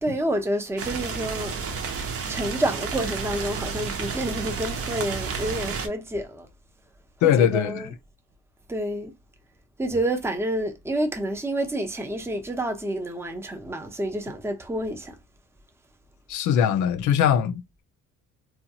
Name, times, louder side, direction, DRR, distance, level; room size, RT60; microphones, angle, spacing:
voice 1, 0.0-1.6 2.3-6.5 7.2-7.9 8.7-9.1 9.8-15.1, right 1 dB, 10° right, 0.6 m, -28 dB
sound 1, 0.8-5.9, right 5 dB, 50° right, 0.7 m, -31 dB
voice 2, 7.2-7.9 16.3-17.8, left 9 dB, 75° left, 0.5 m, -21 dB
2.7 x 2.3 x 2.7 m
cardioid pair, 90°, 30 cm